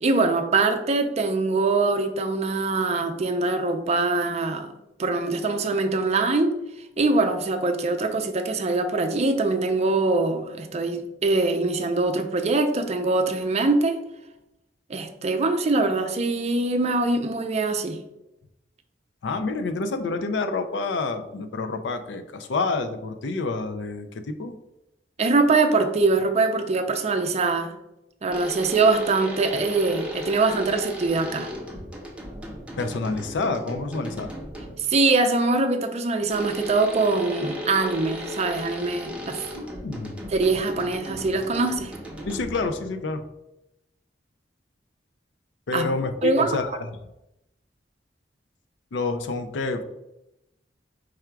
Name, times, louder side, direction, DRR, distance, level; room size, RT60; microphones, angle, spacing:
voice 1, 0.0-4.7 5.0-6.5 7.0-14.0 14.9-18.0 25.2-27.7 28.2-31.5 34.9-39.4 40.3-41.9 45.7-45.9 46.2-46.6, right 3 dB, 35° right, 6 dB, 0.5 m, -23 dB
voice 2, 19.2-24.5 32.8-34.3 39.5-40.2 42.3-43.2 45.7-46.9 48.9-49.8, left 3 dB, 80° left, 8 dB, 0.4 m, -28 dB
sound 1, 28.3-34.9 36.3-43.0, equal, 5° right, 0.7 m, -36 dB
4.8 x 2.3 x 4.5 m, 0.89 s
head